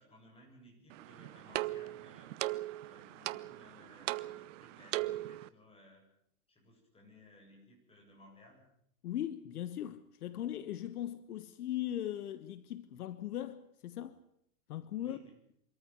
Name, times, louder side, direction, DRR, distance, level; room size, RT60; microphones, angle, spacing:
voice 1, 0.0-2.4 2.8-6.1 6.5-8.7 15.0-15.4, left 1 dB, 10° left, 7.9 m, -59 dB
sound 1, 0.9-5.5, right 17 dB, 50° right, 0.9 m, -39 dB
voice 2, 9.0-14.2 14.7-15.2, left 12 dB, 70° left, 1.4 m, -39 dB
25.0 x 14.0 x 9.8 m
hypercardioid pair, 135°, 47 cm